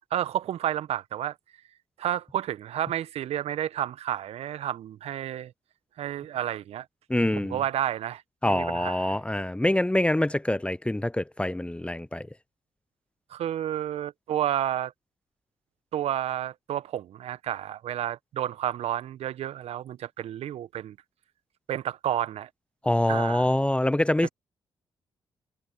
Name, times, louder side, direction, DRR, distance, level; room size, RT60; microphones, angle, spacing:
voice 1, 0.1-1.3 2.0-5.5 6.0-6.8 7.4-9.2 13.3-14.9 15.9-21.0 21.7-22.5 23.1-23.5 24.2-24.3, right 11 dB, 65° right, 1.5 m, -31 dB
voice 2, 7.1-7.6 8.4-12.3 22.8-24.3, left 1 dB, 10° left, 0.9 m, -25 dB
hypercardioid pair, 40°, 12 cm